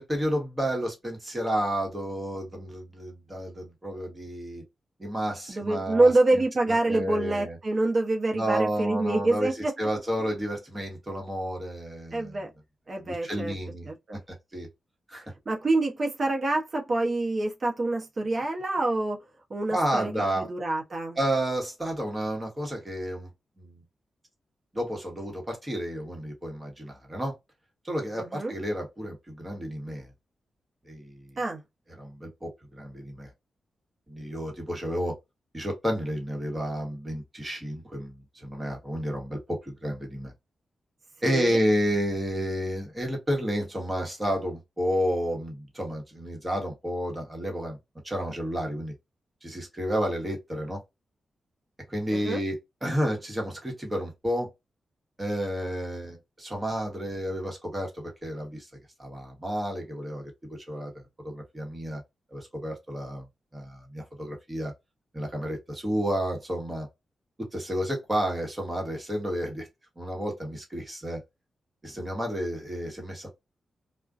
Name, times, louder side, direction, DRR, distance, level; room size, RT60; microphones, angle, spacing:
voice 1, 0.0-4.6 5.0-7.6 8.3-12.5 13.0-13.9 14.5-14.7 15.1-15.2 19.7-20.5 21.2-23.3 23.6-23.8 24.7-27.3 27.8-30.1 30.8-31.4 32.0-33.3 34.1-35.2 35.5-40.3 41.2-47.8 48.0-48.9 49.4-50.8 51.9-54.5 55.2-58.7 59.0-60.9 61.2-62.0 62.3-63.2 63.5-64.7 65.1-66.9 67.4-69.7 70.0-71.2 71.8-73.3, equal, 20° right, 1.1 m, -31 dB
voice 2, 5.5-9.7 12.1-12.5 12.9-13.5 13.8-14.2 15.5-19.2 19.5-21.2 28.1-28.5 31.4-31.6 41.2-41.6 52.1-52.4, right 2 dB, 40° right, 0.7 m, -26 dB
2.4 x 2.2 x 2.4 m
wide cardioid pair, 105°, 0 cm